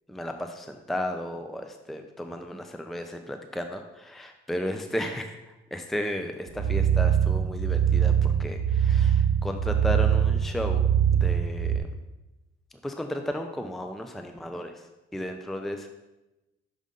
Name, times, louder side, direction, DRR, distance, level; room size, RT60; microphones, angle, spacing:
voice 1, 0.1-5.4 5.7-8.1 8.4-10.8 11.1-11.9 12.8-14.7 15.1-15.9, left 1 dB, ahead, 6 dB, 0.5 m, -34 dB
sound 1, 6.5-11.8, right 8 dB, 65° right, 1.2 m, -23 dB
6.5 x 5.3 x 3.7 m, 1.0 s
cardioid pair, 90°, 20 cm